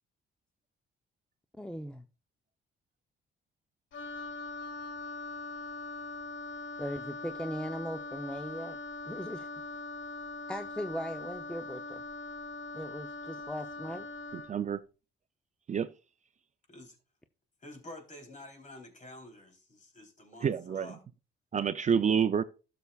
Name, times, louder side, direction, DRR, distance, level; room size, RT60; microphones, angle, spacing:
voice 1, 1.6-2.0 6.8-8.8 9.1-9.5 10.5-12.0 12.7-14.1, equal, 5° left, 0.6 m, -38 dB
Wind instrument woodwind instrument, 3.9-14.6, left 3 dB, 70° left, 1.3 m, -41 dB
voice 2, 14.3-14.8 15.7-15.9 20.4-20.9 21.5-22.4, right 7 dB, 35° right, 0.5 m, -28 dB
voice 3, 17.6-21.1, left 1 dB, 40° left, 3.6 m, -49 dB
12.5 x 6.9 x 2.4 m
cardioid pair, 90°, 20 cm